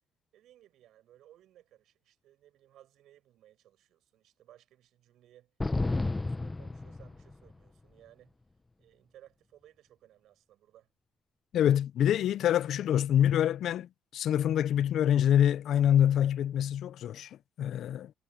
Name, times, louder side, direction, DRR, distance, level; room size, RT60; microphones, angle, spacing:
voice 1, 0.3-5.5 5.8-8.4 8.8-10.9, right 12 dB, 75° right, 7.5 m, -60 dB
sound 1, 5.6-7.5, left 2 dB, 20° left, 1.2 m, -32 dB
voice 2, 11.5-18.1, left 10 dB, 70° left, 0.8 m, -26 dB
supercardioid pair, 65°, 0 cm